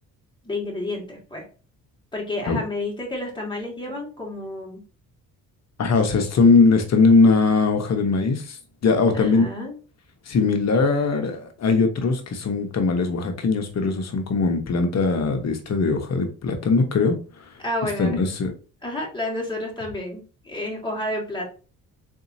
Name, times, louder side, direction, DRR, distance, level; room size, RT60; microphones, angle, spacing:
voice 1, 0.4-1.4 2.1-4.8 9.1-9.7 17.6-18.3 18.8-21.4, left 1 dB, 15° left, 1.6 m, -30 dB
voice 2, 5.8-9.5 10.3-17.5 17.8-18.5, left 4 dB, 50° left, 0.9 m, -20 dB
3.9 x 2.7 x 2.7 m
cardioid pair, 80°, 34 cm